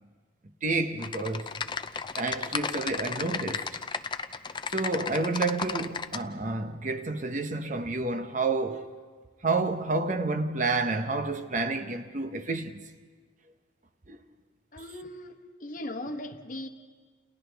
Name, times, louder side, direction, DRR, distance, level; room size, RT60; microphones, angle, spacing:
voice 1, 0.6-1.7 2.2-3.7 4.7-8.9 9.4-12.8 14.1-14.2, right 3 dB, 40° right, 1.0 m, -29 dB
Typing, 1.0-6.2, left 5 dB, 25° left, 0.5 m, -34 dB
voice 2, 14.7-16.7, left 1 dB, 45° left, 1.1 m, -38 dB
29.5 x 29.5 x 3.5 m
head